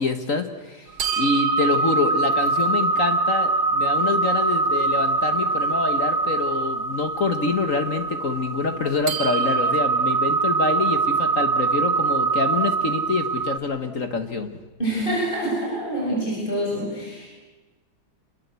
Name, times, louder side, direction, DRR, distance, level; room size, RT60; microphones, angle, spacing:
voice 1, 0.0-14.5, left 4 dB, 45° left, 8 dB, 1.5 m, -26 dB
sound 1, 1.0-13.6, right 4 dB, 85° right, 2.9 m, -23 dB
voice 2, 14.8-17.3, right 1 dB, 25° left, -4 dB, 8.0 m, -26 dB
27.0 x 22.0 x 8.2 m, 1.2 s
omnidirectional pair, 2.3 m